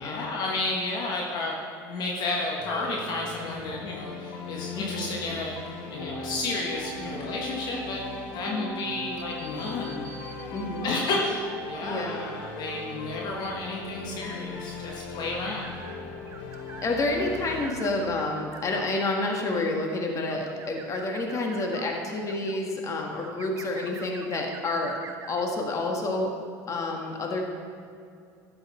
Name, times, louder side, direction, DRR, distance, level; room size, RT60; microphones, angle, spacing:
voice 1, 0.0-5.6 5.9-10.1 10.8-15.7, left 2 dB, 55° left, -1 dB, 1.5 m, -32 dB
sound 1, 2.6-17.7, left 3 dB, 70° left, 1.4 m, -39 dB
voice 2, 4.7-5.2 8.4-8.7 10.5-10.9 11.8-12.3 16.8-25.0 25.3-26.3 26.7-27.4, left 2 dB, 35° left, 1 dB, 1.7 m, -29 dB
sound 2, 5.9-10.9 11.5-12.1 12.6-13.0 13.3-16.9 17.3-19.7 20.2-22.6 23.2-25.4, right 5 dB, 35° right, 0.8 m, -45 dB
12.0 x 7.9 x 4.3 m, 2.4 s
supercardioid pair, 95°, 9 cm